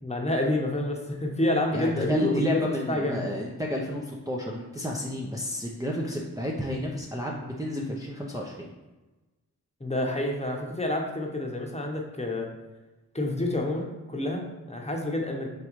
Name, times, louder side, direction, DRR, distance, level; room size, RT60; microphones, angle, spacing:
voice 1, 0.0-2.6 2.9-3.2 9.8-12.5 13.1-15.5, left 1 dB, 20° left, 0 dB, 1.0 m, -28 dB
voice 2, 1.7-8.7, equal, 10° right, -3 dB, 0.6 m, -31 dB
5.0 x 3.1 x 3.1 m, 1.1 s
cardioid pair, 40°, 36 cm